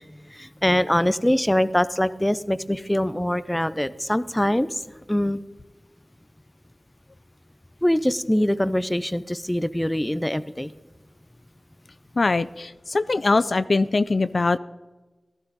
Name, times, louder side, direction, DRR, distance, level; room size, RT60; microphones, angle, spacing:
voice 1, 0.3-4.8 5.1-5.4 7.8-10.7, left 1 dB, 10° left, 15 dB, 0.6 m, -23 dB
voice 2, 12.2-14.6, left 3 dB, 60° left, 14 dB, 0.4 m, -22 dB
15.5 x 12.0 x 4.1 m, 1.2 s
cardioid pair, 50°, 0 cm